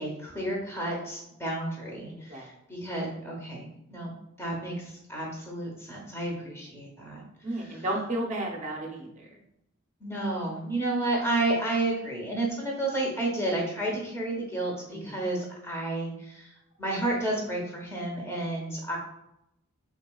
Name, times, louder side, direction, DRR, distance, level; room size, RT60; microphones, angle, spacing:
voice 1, 0.0-7.2 7.6-7.8 10.0-16.5 16.8-19.0, right 2 dB, 10° left, -2 dB, 0.8 m, -31 dB
voice 2, 7.4-9.4 14.9-15.0, right 1 dB, 30° right, 0 dB, 0.7 m, -33 dB
3.9 x 3.7 x 2.3 m, 0.83 s
head